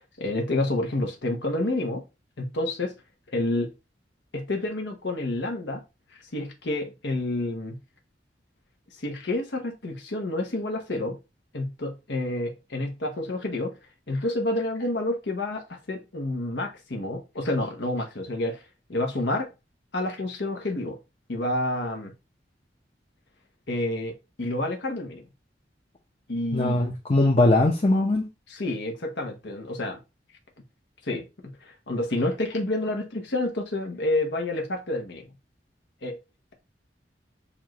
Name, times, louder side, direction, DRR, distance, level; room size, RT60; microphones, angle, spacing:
voice 1, 0.2-2.0 2.4-2.9 3.3-3.7 4.3-5.8 6.3-7.8 9.0-11.2 11.5-13.7 14.1-18.6 18.9-19.5 19.9-21.0 21.3-22.1 23.7-25.2 26.3-26.8 28.5-30.0 31.0-35.3 36.0-36.2, left 2 dB, 85° left, 1.0 m, -29 dB
voice 2, 26.5-28.3, left 2 dB, 35° left, 0.7 m, -21 dB
7.0 x 2.6 x 3.0 m
head